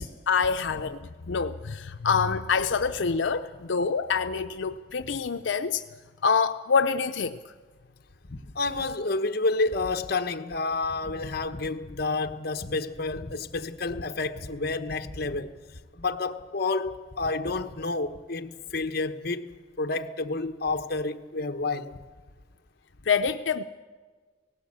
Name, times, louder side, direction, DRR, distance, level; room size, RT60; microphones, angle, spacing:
voice 1, 0.0-5.8 6.2-7.4 23.1-23.6, left 5 dB, 85° left, 0.6 m, -26 dB
voice 2, 8.3-15.6 16.0-22.0, left 3 dB, 55° left, 1.1 m, -30 dB
18.5 x 18.0 x 8.6 m
head